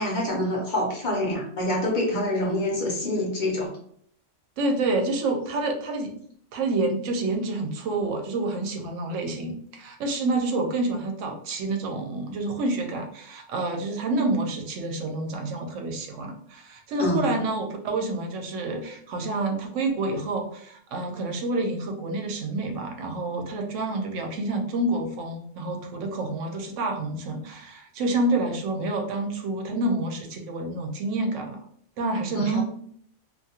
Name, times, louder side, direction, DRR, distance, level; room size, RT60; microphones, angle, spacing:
voice 1, 0.0-3.7 17.0-17.3 32.3-32.6, equal, 45° left, -3 dB, 0.8 m, -26 dB
voice 2, 4.6-6.1 6.5-31.6 32.0-32.6, right 2 dB, 85° right, 3 dB, 0.9 m, -28 dB
2.5 x 2.3 x 2.7 m, 0.63 s
omnidirectional pair, 1.3 m